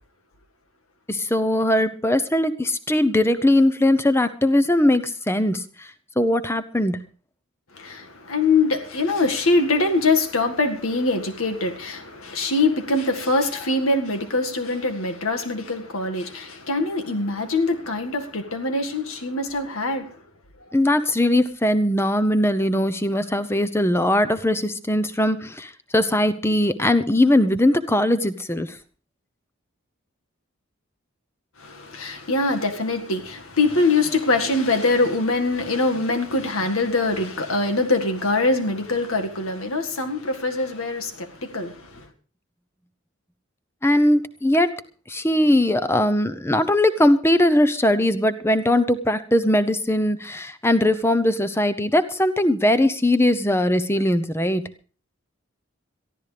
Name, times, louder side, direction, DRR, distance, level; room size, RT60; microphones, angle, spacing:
voice 1, 1.1-5.9 6.2-7.0 20.7-28.7 43.8-44.8 45.1-54.6, left 1 dB, 10° left, 0.7 m, -20 dB
voice 2, 7.8-20.1 31.6-41.9, left 3 dB, 80° left, 1.9 m, -23 dB
22.5 x 14.0 x 3.4 m
head